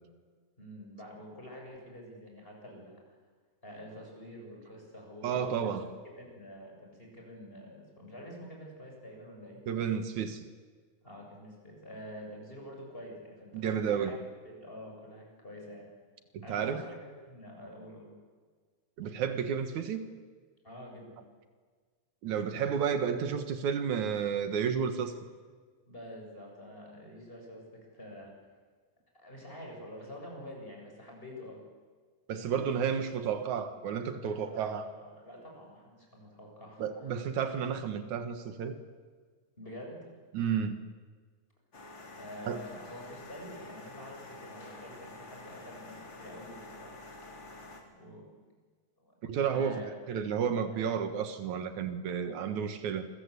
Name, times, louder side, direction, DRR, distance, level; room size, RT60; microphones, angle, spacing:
voice 1, 0.6-3.0 3.6-5.8 6.2-9.6 11.0-14.1 14.4-15.9 16.4-18.1 20.6-21.2 25.8-28.3 29.2-31.6 34.2-36.9 39.6-40.1 42.2-46.9 47.8-48.4 49.0-49.1 49.5-49.9 50.7-50.9 52.1-52.2, equal, 15° left, 0 dB, 7.6 m, -47 dB
voice 2, 5.2-5.9 9.7-10.4 13.5-14.2 16.3-16.8 19.0-20.1 22.2-25.1 32.3-34.9 36.8-38.8 40.3-40.8 42.5-42.6 49.2-49.8 50.1-53.1, right 7 dB, 85° right, 9 dB, 3.0 m, -31 dB
sound 1, 41.7-47.8, left 2 dB, 40° left, 4.3 m, -48 dB
28.0 x 23.5 x 8.3 m, 1.5 s
omnidirectional pair, 3.3 m